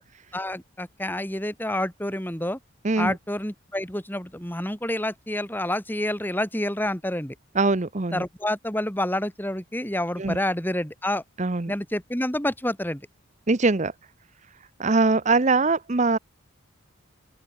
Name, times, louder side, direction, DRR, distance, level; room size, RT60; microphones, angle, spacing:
voice 1, 0.3-2.6 3.0-7.3 8.1-11.2 11.7-13.0, left 1 dB, 10° left, 2.8 m, -28 dB
voice 2, 7.5-8.2 10.2-10.4 11.4-11.7 13.5-13.9 14.8-16.2, right 3 dB, 35° right, 0.7 m, -22 dB
open air
head